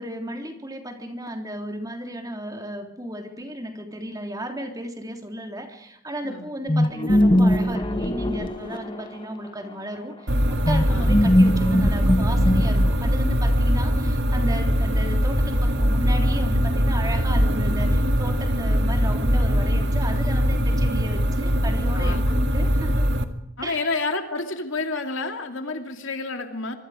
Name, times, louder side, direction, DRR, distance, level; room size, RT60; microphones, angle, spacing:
voice 1, 0.0-23.1 23.6-24.0, right 1 dB, 15° right, 4 dB, 3.5 m, -34 dB
sound 1, 6.7-9.2 10.7-13.1, equal, 20° left, 2.1 m, -20 dB
sound 2, 10.3-23.2, equal, 55° right, 2.1 m, -21 dB
voice 2, 10.9-11.4 21.9-22.4 23.6-26.7, left 3 dB, 60° left, 5 dB, 2.7 m, -30 dB
26.0 x 24.5 x 5.1 m, 0.81 s
head